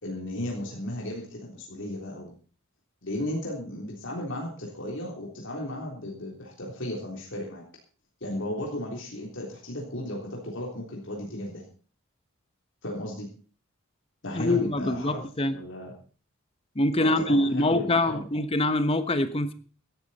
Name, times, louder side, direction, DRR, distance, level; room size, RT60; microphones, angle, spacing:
voice 1, 0.0-2.3 3.0-7.6 8.2-11.7 12.8-13.3 14.2-15.2 15.5-15.9 17.0-18.2, left 1 dB, 65° left, -2 dB, 3.6 m, -35 dB
voice 2, 14.3-15.6 16.8-19.5, left 1 dB, 30° left, 11 dB, 1.2 m, -24 dB
16.5 x 12.0 x 4.2 m, 0.39 s
head